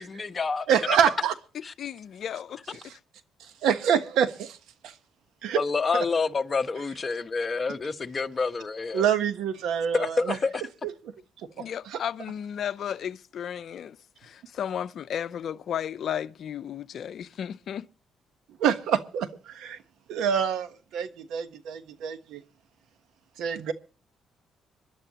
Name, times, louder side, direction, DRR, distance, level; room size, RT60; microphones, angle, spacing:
voice 1, 0.0-0.7 1.6-1.7 5.5-9.1 9.9-10.6, left 4 dB, 35° left, 1.1 m, -28 dB
voice 2, 0.7-1.3 2.9-3.0 3.4-4.6 4.8-4.9 5.4-5.6 5.9-6.0 8.9-10.4 11.6-11.7 11.9-12.0 18.6-19.8 20.1-22.4 23.4-23.7, right 8 dB, 85° right, 1.2 m, -26 dB
voice 3, 1.8-2.8 11.6-17.9, left 9 dB, 65° left, 0.7 m, -34 dB
25.5 x 11.0 x 3.0 m
cardioid pair, 90°, 0 cm